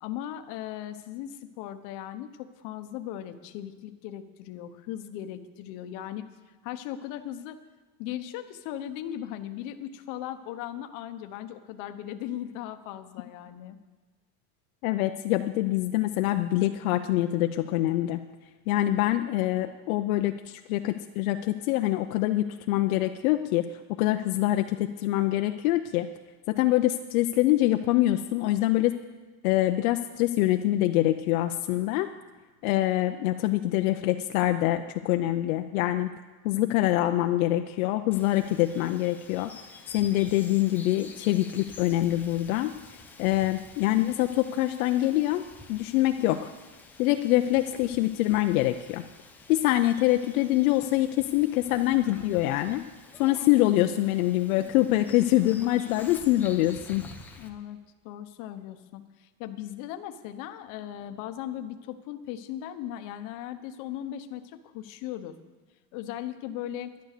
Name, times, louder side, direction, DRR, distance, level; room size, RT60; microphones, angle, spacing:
voice 1, 0.0-6.3 6.6-7.6 8.0-13.8 57.4-65.3 65.9-66.9, left 11 dB, 45° left, 9 dB, 1.0 m, -38 dB
voice 2, 14.8-18.2 18.7-23.7 24.0-26.1 26.6-28.9 29.4-32.1 32.6-36.1 36.4-39.5 39.9-42.7 43.2-45.4 45.7-46.5 47.0-49.0 49.5-52.8 53.2-57.0, left 15 dB, 65° left, 6 dB, 0.7 m, -25 dB
Bird vocalization bird call bird song, 38.1-57.5, left 3 dB, 5° left, 0.4 m, -49 dB
11.5 x 10.5 x 6.7 m, 1.3 s
supercardioid pair, 160°, 45 cm